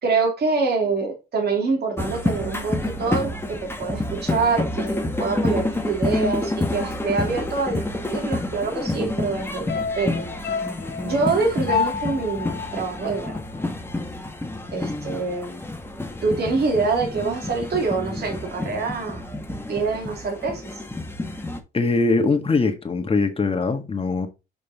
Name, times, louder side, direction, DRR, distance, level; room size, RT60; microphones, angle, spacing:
voice 1, 0.0-10.3 11.0-13.4 14.7-15.6 16.2-19.3 19.7-20.6, right 4 dB, 55° right, 2.8 m, -25 dB
sound 1, 2.0-21.6, left 2 dB, 10° left, 1.3 m, -29 dB
sound 2, 9.7-14.1 14.4-14.5, left 6 dB, 55° left, 0.7 m, -30 dB
voice 2, 21.7-24.3, left 3 dB, 30° left, 1.4 m, -21 dB
5.3 x 5.2 x 4.1 m
cardioid pair, 90°, 20 cm